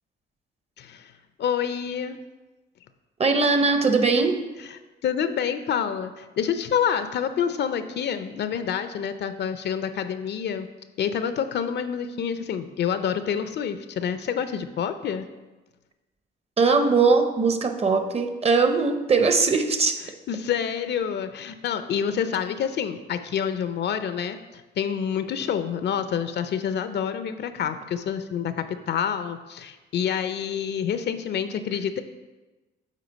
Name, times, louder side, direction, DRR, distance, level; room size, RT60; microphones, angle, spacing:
voice 1, 0.8-1.1 1.4-2.2 5.0-10.7 11.0-15.3 20.3-32.0, left 8 dB, 60° left, 10 dB, 0.5 m, -27 dB
voice 2, 3.2-4.4 16.6-20.0, right 4 dB, 30° right, 7 dB, 0.7 m, -20 dB
8.2 x 4.1 x 4.0 m, 1.2 s
cardioid pair, 90°, 20 cm